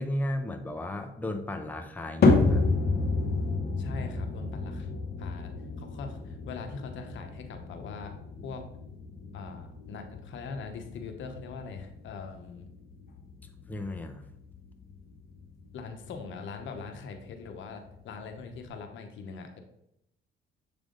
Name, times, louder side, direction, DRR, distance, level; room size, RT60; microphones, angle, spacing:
voice 1, 0.0-2.6 8.4-8.6 13.7-14.2, left 1 dB, 10° left, 6 dB, 0.6 m, -34 dB
sound 1, 2.2-18.7, left 3 dB, 50° left, 1.1 m, -31 dB
voice 2, 3.8-4.9 5.2-8.1 8.4-8.6 9.3-12.7 15.7-19.6, left 4 dB, 75° left, 5 dB, 0.9 m, -42 dB
7.5 x 3.4 x 3.8 m, 0.80 s
cardioid pair, 90°, 20 cm